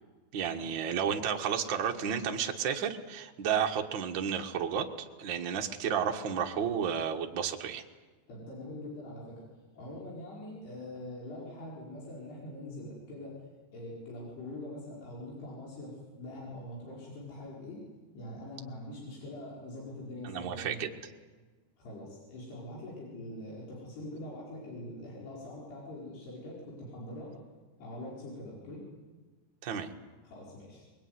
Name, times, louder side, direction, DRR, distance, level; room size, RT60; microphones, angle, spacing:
voice 1, 0.3-7.8 20.2-20.9 29.6-29.9, right 8 dB, 80° right, 3 dB, 1.0 m, -32 dB
voice 2, 8.3-9.4 9.7-13.4 13.7-17.8 18.1-21.0 21.8-27.3 27.8-28.9 30.2-30.9, left 1 dB, 90° left, -5 dB, 7.1 m, -43 dB
25.0 x 22.0 x 9.6 m, 1.3 s
omnidirectional pair, 4.5 m